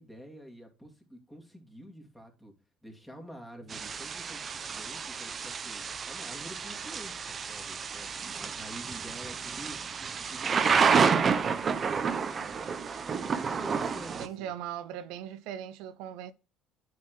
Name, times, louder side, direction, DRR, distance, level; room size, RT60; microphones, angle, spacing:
voice 1, 0.0-2.5 2.8-9.9 10.2-12.9 13.2-14.5, equal, 5° left, 2.5 m, -48 dB
Thunder / Rain, 3.7-14.3, right 6 dB, 40° right, 0.8 m, -30 dB
voice 2, 14.2-16.3, right 10 dB, 80° right, 0.5 m, -39 dB
9.2 x 4.3 x 3.1 m
supercardioid pair, 85°, 0 cm